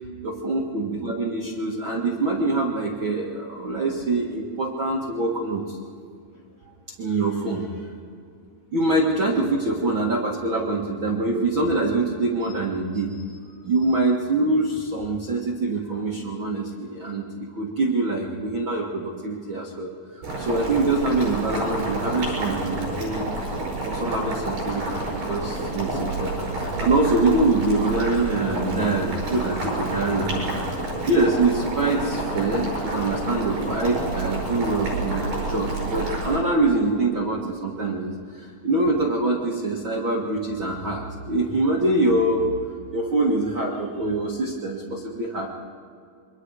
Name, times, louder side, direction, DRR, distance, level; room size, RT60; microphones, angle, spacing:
voice 1, 0.2-5.8 7.0-7.8 8.7-13.2 13.6-19.9 20.4-23.2 23.8-26.3 26.6-30.6 31.0-42.5 42.9-45.5, right 2 dB, 40° right, -3 dB, 2.0 m, -24 dB
Boiling, 20.2-36.4, right 2 dB, 70° right, 9.5 m, -29 dB
28.0 x 24.5 x 4.9 m, 2.3 s
omnidirectional pair, 4.3 m